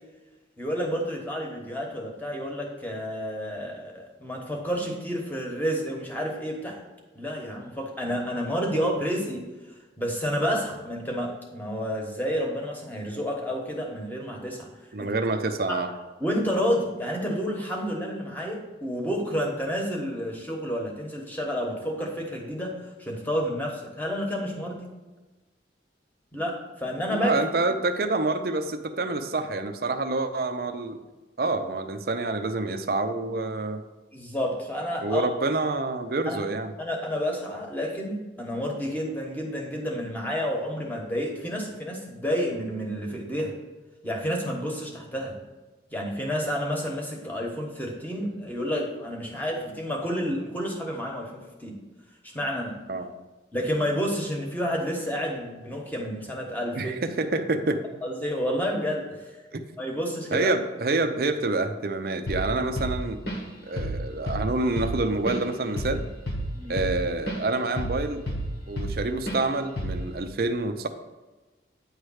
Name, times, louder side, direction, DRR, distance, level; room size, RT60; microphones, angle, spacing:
voice 1, 0.6-6.8 7.1-9.4 10.0-14.7 15.0-15.1 15.7-15.8 16.2-24.9 26.3-27.5 34.1-35.3 36.3-36.4 36.8-43.5 44.0-45.4 45.9-51.8 52.3-52.8 53.5-56.9 58.0-59.4 59.8-60.5 66.5-66.7, equal, 10° left, 0 dB, 1.1 m, -30 dB
voice 2, 14.9-15.9 27.1-31.0 31.4-33.8 35.0-36.7 52.9-53.1 56.7-57.8 59.5-59.7 60.3-63.2 63.6-66.1 66.7-68.2 68.7-70.9, right 2 dB, 55° right, 8 dB, 0.5 m, -27 dB
Drum kit / Drum, 62.3-62.5 62.8-63.5 63.8-64.0 64.3-67.4 67.8-69.0 69.3-69.4 69.8-70.1, right 1 dB, 65° left, 1.3 m, -30 dB
9.4 x 3.2 x 6.3 m, 1.2 s
head